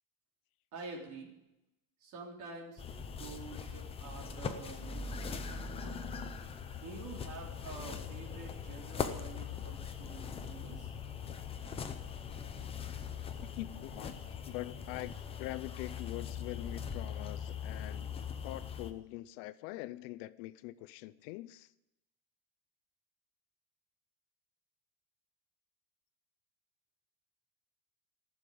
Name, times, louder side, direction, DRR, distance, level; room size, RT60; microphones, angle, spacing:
voice 1, 0.7-1.3 2.0-2.8 3.1-6.0 6.8-10.9, right 4 dB, 40° right, 3.4 m, -48 dB
sound 1, 2.8-18.9, left 6 dB, 15° left, 0.5 m, -41 dB
sound 2, 9.8-18.0, left 2 dB, 10° right, 2.6 m, -57 dB
voice 2, 13.4-14.2 14.5-18.1 18.4-21.7, left 17 dB, 65° left, 0.6 m, -43 dB
15.0 x 7.0 x 9.2 m
cardioid pair, 175°, 44 cm